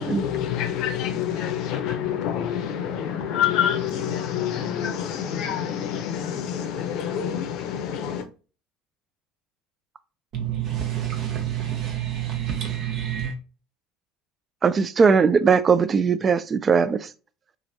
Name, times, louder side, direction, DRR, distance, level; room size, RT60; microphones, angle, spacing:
voice 1, 0.0-8.3, left 9 dB, 60° left, 0.5 m, -27 dB
voice 2, 10.3-13.3, right 10 dB, 60° right, 0.8 m, -28 dB
voice 3, 14.6-17.0, right 5 dB, 35° right, 0.3 m, -19 dB
3.0 x 2.5 x 2.6 m
hypercardioid pair, 65°, 0 cm